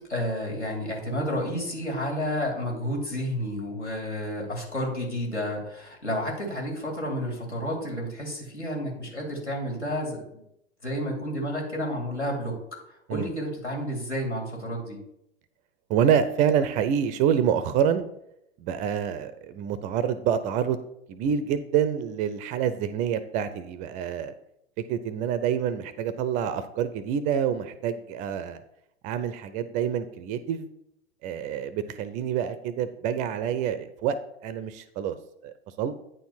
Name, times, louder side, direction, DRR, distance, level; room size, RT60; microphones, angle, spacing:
voice 1, 0.1-10.4 10.8-12.6 13.1-15.0, equal, 85° left, 0 dB, 2.9 m, -31 dB
voice 2, 15.9-18.1 18.6-20.8 21.1-24.3 24.9-28.6 29.0-30.7 31.2-34.2 34.4-35.2 35.4-35.9, right 8 dB, 25° right, 13 dB, 0.4 m, -27 dB
9.2 x 4.3 x 5.6 m, 0.79 s
figure-of-eight pair, 95°, 33 cm